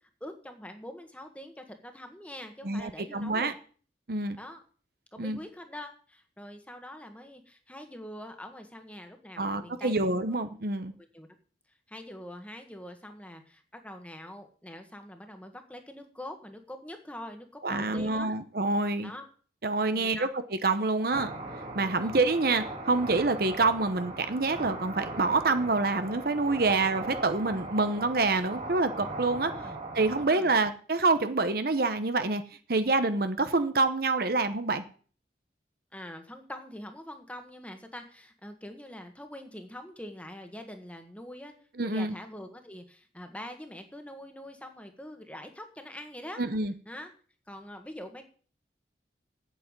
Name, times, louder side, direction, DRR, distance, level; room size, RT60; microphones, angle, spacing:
voice 1, 0.2-3.5 4.4-4.6 5.1-10.0 11.0-11.3 11.9-18.3 19.0-19.3 19.9-20.3 22.0-22.2 29.5-29.8 30.2-30.5 35.9-46.4 46.8-47.1 47.5-48.2, left 1 dB, 10° left, 6 dB, 1.6 m, -44 dB
voice 2, 2.6-3.5 4.1-4.4 5.2-5.4 9.4-10.9 17.6-19.1 19.6-20.3 20.6-21.3 21.7-29.5 29.9-32.4 32.7-34.8 41.8-42.1 46.4-46.7, right 3 dB, 55° right, 10 dB, 0.9 m, -27 dB
sound 1, 21.1-30.3, right 2 dB, 40° right, 2.4 m, -39 dB
8.5 x 8.4 x 9.0 m, 0.43 s
head